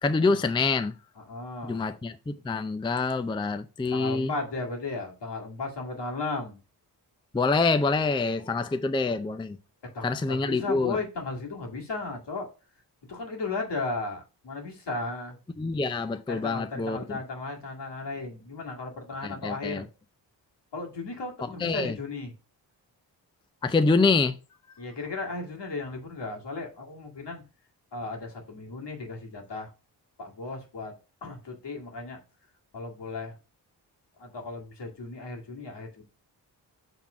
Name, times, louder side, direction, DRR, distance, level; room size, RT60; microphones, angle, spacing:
voice 1, 0.0-0.9 1.6-4.3 7.3-9.6 10.0-11.0 15.6-17.2 19.2-19.9 21.6-22.0 23.6-24.4, left 3 dB, 10° left, 0.5 m, -26 dB
voice 2, 1.2-1.8 3.9-6.6 9.9-12.5 13.1-15.4 16.3-19.9 20.7-22.3 24.8-27.4 27.9-29.7 30.2-30.9 31.2-32.2 32.7-33.4 34.2-36.0, left 3 dB, 65° left, 2.1 m, -35 dB
5.9 x 3.6 x 4.9 m
cardioid pair, 50°, 44 cm